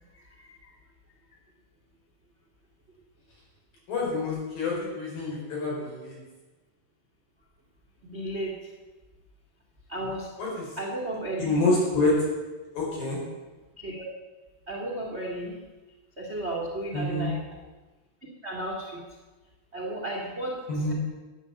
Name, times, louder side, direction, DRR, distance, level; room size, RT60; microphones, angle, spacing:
voice 1, 0.1-0.7 8.0-8.7 9.9-10.3 10.8-11.6 13.8-14.1 14.7-15.6 16.2-17.4 18.4-19.0 19.7-20.9, right 1 dB, 40° right, -2 dB, 0.8 m, -34 dB
voice 2, 3.9-6.2 10.4-10.7 11.4-12.3 12.8-13.2 16.9-17.3 20.7-20.9, left 2 dB, 55° left, -5 dB, 6.3 m, -27 dB
11.5 x 9.3 x 7.8 m, 1.2 s
omnidirectional pair, 5.0 m